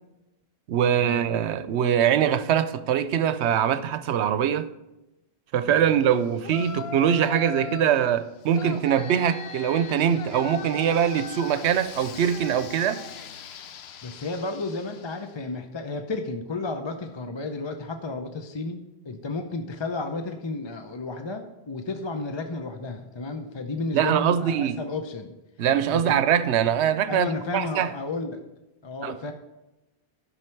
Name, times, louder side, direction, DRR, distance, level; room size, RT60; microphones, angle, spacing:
voice 1, 0.7-4.7 5.5-13.0 23.9-24.8 25.6-27.3 27.5-27.9 29.0-29.2, right 9 dB, 85° right, 0.9 m, -23 dB
Yell, 6.4-8.0 8.5-15.3, left 7 dB, 70° left, 0.9 m, -39 dB
voice 2, 14.0-25.3 25.9-26.3 27.1-28.4 28.8-29.3, left 3 dB, 30° left, 0.6 m, -32 dB
11.0 x 6.3 x 4.5 m
omnidirectional pair, 1.1 m